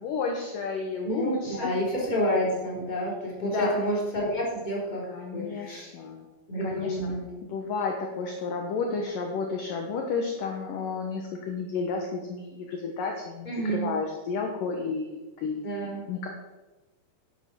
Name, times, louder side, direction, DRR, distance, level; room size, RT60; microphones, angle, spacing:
voice 1, 0.0-1.8 3.4-3.8 5.1-6.3 6.6-7.1 7.4-16.3, left 4 dB, 70° left, 2 dB, 2.1 m, -32 dB
voice 2, 1.0-5.9 6.5-7.3 13.4-13.9 15.6-16.1, equal, 10° left, -4 dB, 2.9 m, -29 dB
11.0 x 8.9 x 6.2 m, 1.1 s
omnidirectional pair, 5.3 m